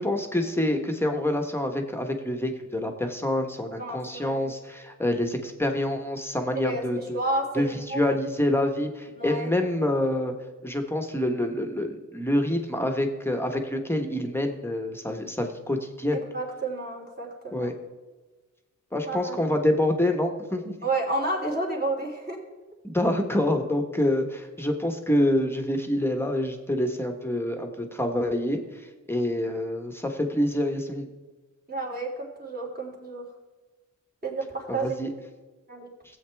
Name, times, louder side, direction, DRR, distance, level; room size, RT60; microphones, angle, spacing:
voice 1, 0.0-7.2 7.5-10.3 10.6-16.2 17.5-17.7 18.9-20.8 22.8-31.1 34.7-35.1, left 1 dB, 5° left, 4 dB, 1.2 m, -27 dB
voice 2, 3.8-4.4 6.6-8.0 9.2-9.5 16.1-17.7 19.1-19.6 20.8-22.4 31.7-33.2 34.2-34.9 35.7-35.9, right 2 dB, 30° right, -2 dB, 3.1 m, -31 dB
16.5 x 8.1 x 3.5 m, 1.2 s
wide cardioid pair, 95°, 31 cm